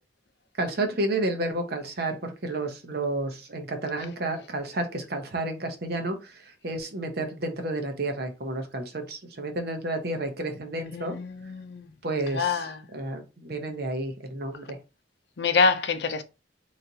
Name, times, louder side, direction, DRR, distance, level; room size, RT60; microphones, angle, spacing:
voice 1, 0.6-11.2 12.0-14.8, right 2 dB, 60° right, 0.8 m, -31 dB
voice 2, 10.9-11.8 12.4-12.7 15.4-16.2, left 4 dB, 65° left, 0.6 m, -25 dB
4.0 x 3.1 x 2.8 m
head